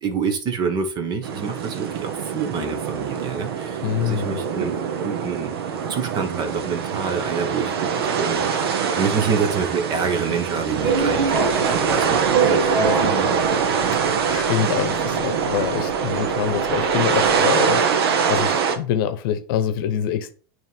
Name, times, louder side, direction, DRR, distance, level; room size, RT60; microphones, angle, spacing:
voice 1, 0.0-4.7 5.0-5.5 5.9-13.4, right 5 dB, 35° right, 1.2 m, -27 dB
sound 1, 1.2-18.8, right 6 dB, 85° right, 1.0 m, -24 dB
voice 2, 3.8-4.4 13.9-20.3, left 9 dB, 65° left, 0.8 m, -25 dB
sound 2, 10.8-17.4, right 4 dB, 65° right, 1.5 m, -26 dB
9.0 x 3.2 x 3.5 m
supercardioid pair, 130°, 13 cm